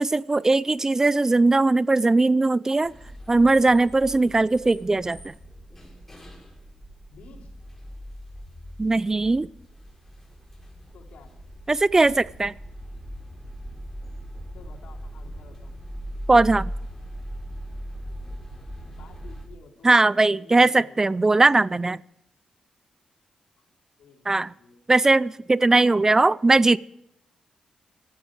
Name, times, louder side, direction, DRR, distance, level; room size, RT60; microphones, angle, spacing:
voice 1, 0.0-2.9 3.3-5.3 8.8-9.5 11.7-12.5 16.3-16.7 19.8-22.0 24.3-24.5 24.9-26.8, right 2 dB, 25° right, 20 dB, 0.4 m, -19 dB
sound 1, 2.8-19.5, equal, 10° left, 6.1 m, -39 dB
voice 2, 7.1-7.5 10.9-11.4 14.5-15.8 19.0-21.1 23.6-23.7 24.0-24.8 25.8-26.3, left 5 dB, 80° left, 2 dB, 3.6 m, -51 dB
16.0 x 13.5 x 4.8 m, 0.78 s
cardioid pair, 75°, 2 cm